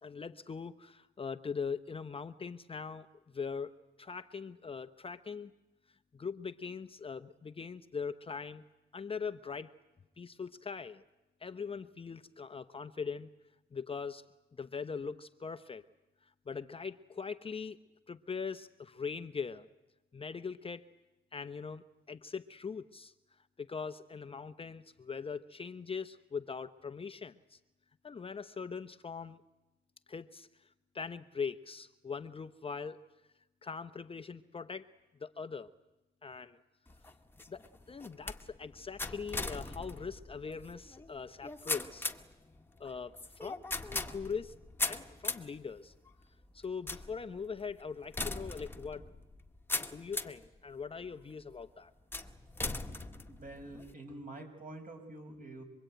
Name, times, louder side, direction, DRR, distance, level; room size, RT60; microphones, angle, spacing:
voice 1, 0.0-5.5 6.1-8.6 8.9-9.7 10.2-11.0 11.4-13.3 13.7-14.2 14.6-15.8 16.2-17.8 18.1-19.7 20.1-20.9 21.3-23.1 23.6-27.6 28.0-29.4 30.1-33.0 33.6-34.9 35.2-35.7 36.2-36.6 37.5-37.6 37.9-42.1 42.8-43.6 44.1-44.5 44.9-45.9 46.5-49.1 49.8-51.9, left 5 dB, 30° left, 9 dB, 0.8 m, -41 dB
sound 1, 36.9-50.5 51.0-51.5 52.1-53.9, left 2 dB, 10° left, 1.6 m, -40 dB
voice 2, 53.3-55.6, right 2 dB, 45° right, 4 dB, 6.5 m, -47 dB
26.0 x 22.0 x 9.1 m, 0.99 s
cardioid pair, 90°, 20 cm